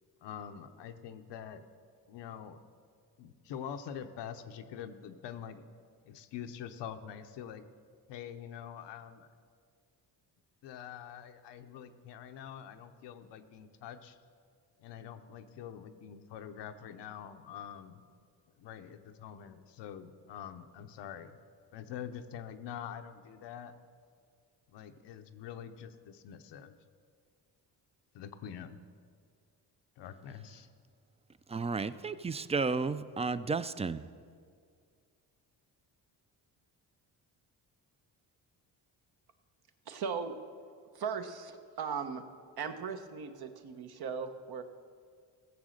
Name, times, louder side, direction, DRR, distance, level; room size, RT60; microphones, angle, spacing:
voice 1, 0.2-1.6 2.1-2.6 3.2-5.6 6.1-7.6 8.1-9.3 10.6-14.2 14.8-18.0 18.6-21.4 21.7-23.7 24.7-26.7 28.1-28.8 30.0-30.7, left 8 dB, 90° left, 8 dB, 0.8 m, -45 dB
voice 2, 31.5-34.0, right 4 dB, 15° right, 14 dB, 0.3 m, -32 dB
voice 3, 39.9-40.4 40.9-42.2 42.6-44.6, right 6 dB, 65° right, 7 dB, 1.1 m, -38 dB
15.0 x 7.3 x 6.5 m, 2.1 s
cardioid pair, 85°, 41 cm